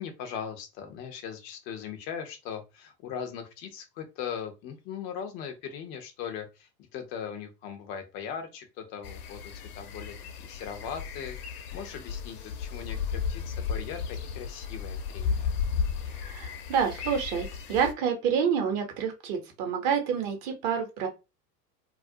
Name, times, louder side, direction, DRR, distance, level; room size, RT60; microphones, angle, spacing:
voice 1, 0.0-15.5, left 7 dB, 25° left, 6 dB, 0.4 m, -39 dB
sound 1, 9.0-17.9, left 6 dB, 65° left, 0.6 m, -34 dB
voice 2, 16.2-21.1, right 7 dB, 45° right, 4 dB, 0.9 m, -28 dB
2.3 x 2.0 x 2.6 m, 0.26 s
figure-of-eight pair, 85°, 49 cm